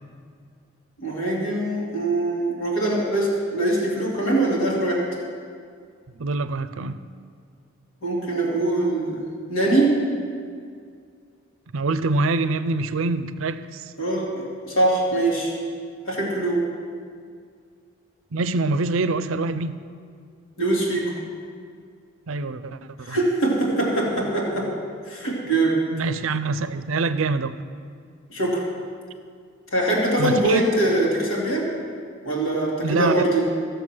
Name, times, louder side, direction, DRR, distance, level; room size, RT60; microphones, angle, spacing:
voice 1, 1.0-5.1 8.0-10.1 14.0-15.5 16.1-16.7 20.6-21.1 23.0-24.7 25.1-25.9 28.3-28.6 29.7-31.7 32.2-33.4, right 2 dB, 85° left, -3 dB, 2.6 m, -23 dB
voice 2, 6.1-7.0 11.7-13.9 18.3-19.8 22.3-23.2 25.9-27.6 30.2-30.6 32.8-33.2, right 3 dB, 80° right, 12 dB, 0.5 m, -25 dB
15.0 x 6.8 x 6.0 m, 2.2 s
head